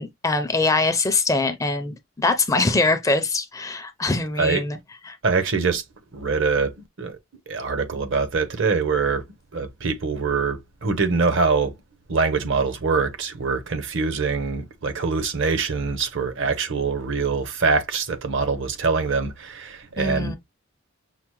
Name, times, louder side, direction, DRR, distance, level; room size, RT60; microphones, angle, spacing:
voice 1, 0.0-4.8 5.0-5.2 20.0-20.4, left 3 dB, 15° left, 0.4 m, -23 dB
voice 2, 5.2-5.8 6.1-7.2 7.5-9.3 9.5-11.7 12.1-20.4, right 4 dB, 60° right, 0.7 m, -24 dB
5.7 x 2.0 x 3.0 m
head